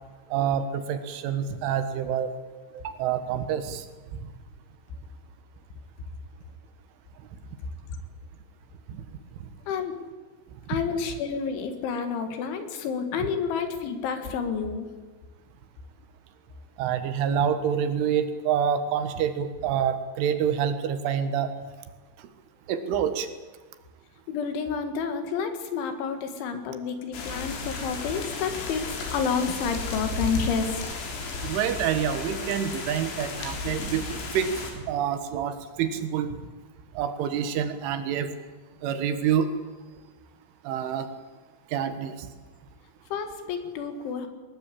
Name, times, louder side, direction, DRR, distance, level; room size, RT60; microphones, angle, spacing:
voice 1, 0.3-2.3 2.7-3.9 8.9-9.1 9.4-9.5 16.8-21.5 22.2-22.3 22.7-23.3 31.4-36.4 37.0-38.3 38.8-39.5 40.7-41.1 41.7-42.3, right 8 dB, 75° right, 9 dB, 3.7 m, -27 dB
voice 2, 10.7-14.9 24.3-30.8 43.1-44.3, left 6 dB, 70° left, 7 dB, 4.1 m, -29 dB
sound 1, 27.1-34.7, left 3 dB, 90° left, 6.4 m, -34 dB
21.5 x 20.0 x 8.6 m, 1.3 s
omnidirectional pair, 5.9 m